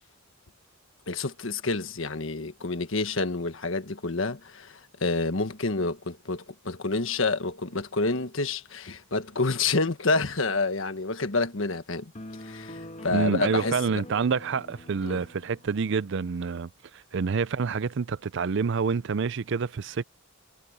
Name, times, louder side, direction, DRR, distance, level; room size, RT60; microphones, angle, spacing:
voice 1, 1.1-12.1 12.4-13.8 15.0-15.2, left 3 dB, 70° left, 1.5 m, -28 dB
sound 1, 12.1-15.7, left 1 dB, 35° left, 1.7 m, -43 dB
voice 2, 13.1-20.0, right 5 dB, 60° right, 0.5 m, -27 dB
head